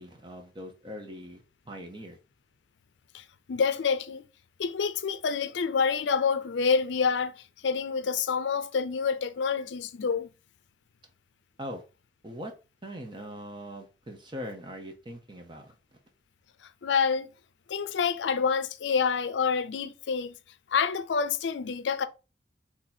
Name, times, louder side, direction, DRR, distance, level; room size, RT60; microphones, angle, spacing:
voice 1, 0.0-2.2 11.6-11.8 12.2-12.5 12.8-15.7, equal, 25° right, 0.9 m, -41 dB
voice 2, 3.1-4.2 4.6-7.3 7.6-10.3 16.8-17.3 17.7-20.3 20.7-22.1, left 5 dB, 85° left, 0.4 m, -27 dB
4.3 x 2.9 x 4.2 m
head